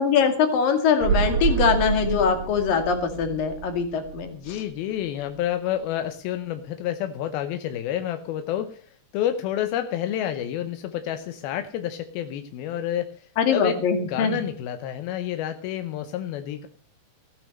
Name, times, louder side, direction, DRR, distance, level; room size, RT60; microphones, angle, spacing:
voice 1, 0.0-4.6 13.4-14.4, left 6 dB, 70° left, 7 dB, 3.7 m, -22 dB
sound 1, 1.0-4.8 5.0-5.1, right 7 dB, 85° right, 2.8 m, -28 dB
voice 2, 4.3-16.7, left 11 dB, 90° left, 9 dB, 2.8 m, -29 dB
15.5 x 9.5 x 6.4 m, 0.40 s
omnidirectional pair, 4.2 m